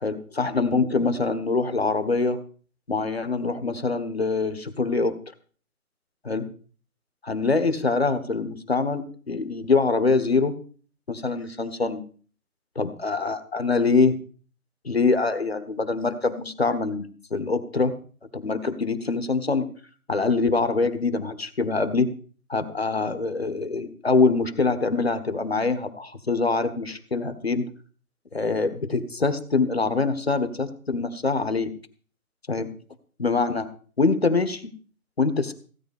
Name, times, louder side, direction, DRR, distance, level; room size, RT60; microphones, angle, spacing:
voice 1, 0.0-2.4 2.9-5.1 6.2-6.5 7.2-10.5 11.1-12.0 12.8-14.2 14.8-18.0 18.3-19.7 20.1-22.1 22.5-27.7 28.3-31.7 32.5-32.7 33.2-33.7 34.0-34.7 35.2-35.5, left 3 dB, 45° left, 10 dB, 1.4 m, -24 dB
16.5 x 8.9 x 5.3 m, 0.43 s
figure-of-eight pair, 175°, 44 cm